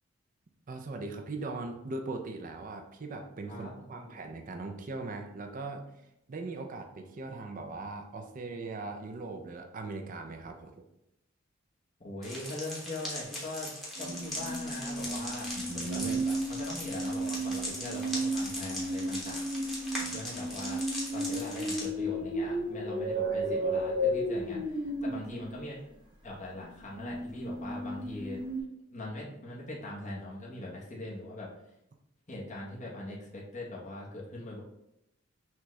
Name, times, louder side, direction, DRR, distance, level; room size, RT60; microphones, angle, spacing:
voice 1, 0.7-5.8 6.3-10.8 15.5-16.3 23.1-23.5, right 3 dB, 40° right, 4 dB, 0.5 m, -40 dB
voice 2, 3.5-4.2 12.0-13.7 14.0-15.5 15.7-19.4 20.0-20.8 21.1-25.8 26.2-28.4 28.9-31.5 32.3-34.6, left 2 dB, 35° left, -4 dB, 1.1 m, -41 dB
sound 1, 12.2-21.9, left 1 dB, ahead, 1.1 m, -40 dB
sound 2, 14.0-25.6 26.6-28.6, right 1 dB, 25° right, 0.8 m, -34 dB
6.0 x 2.4 x 3.1 m, 0.82 s
head